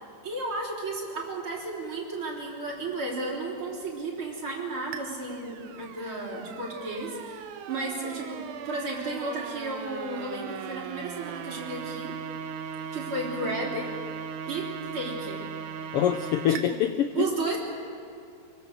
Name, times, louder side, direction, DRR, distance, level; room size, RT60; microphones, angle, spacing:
voice 1, 0.2-12.2 12.9-13.9 14.5-15.4 16.5-16.7 17.1-17.6, right 2 dB, 40° right, -2 dB, 4.6 m, -33 dB
sound 1, 4.9-16.6, right 7 dB, 85° right, 2.3 m, -38 dB
voice 2, 15.9-17.3, left 10 dB, 85° left, 9 dB, 1.3 m, -25 dB
24.5 x 23.5 x 6.7 m, 2.4 s
omnidirectional pair, 3.4 m